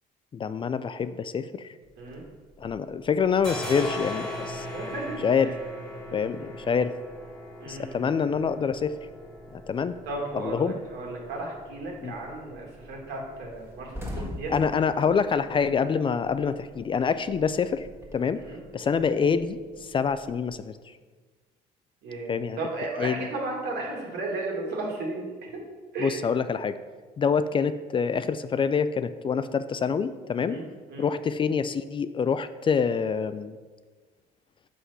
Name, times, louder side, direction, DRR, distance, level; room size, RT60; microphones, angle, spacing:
voice 1, 0.3-1.7 2.6-4.7 5.2-5.5 6.1-6.9 7.7-8.9 9.5-10.0 10.3-10.7 12.0-12.1 14.5-18.4 18.7-20.9 22.3-22.6 23.0-23.3 26.0-26.8 27.2-30.6 31.0-33.6, left 6 dB, 30° left, 13 dB, 0.3 m, -26 dB
sound 1, 1.9-2.8 3.0-20.6, left 1 dB, 5° left, 1.5 m, -42 dB
voice 2, 4.7-5.5 7.6-8.1 10.1-14.5 18.4-19.0 22.0-25.6 25.9-26.1 30.4-30.6 30.9-31.1, right 2 dB, 80° right, -1 dB, 2.2 m, -35 dB
sound 2, 12.2-12.3 12.6-12.7 13.0-13.1 13.4-16.4 16.7-18.4, left 1 dB, 15° right, 1.5 m, -40 dB
6.3 x 5.7 x 5.7 m, 1.4 s
cardioid pair, 110°, 17 cm